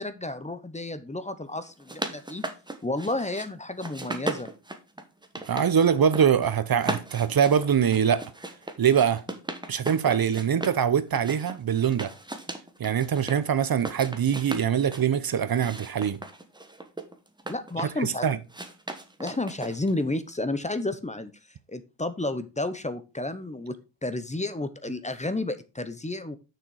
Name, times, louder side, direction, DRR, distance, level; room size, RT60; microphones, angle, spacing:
voice 1, 0.0-2.4 2.8-4.5 17.5-18.2 19.2-21.3 21.7-23.7 24.0-26.4, left 2 dB, 15° left, 0.8 m, -31 dB
sound 1, 1.6-3.5 3.8-5.7 6.0-6.5 6.8-10.8 11.1-13.4 13.7-15.1 15.5-18.0 18.5-20.0, right 2 dB, 10° right, 1.1 m, -37 dB
voice 2, 5.5-8.3 8.8-9.2 9.7-12.1 12.8-16.2 18.0-18.4, right 8 dB, 55° right, 0.7 m, -23 dB
6.7 x 6.3 x 4.7 m
wide cardioid pair, 110°, 44 cm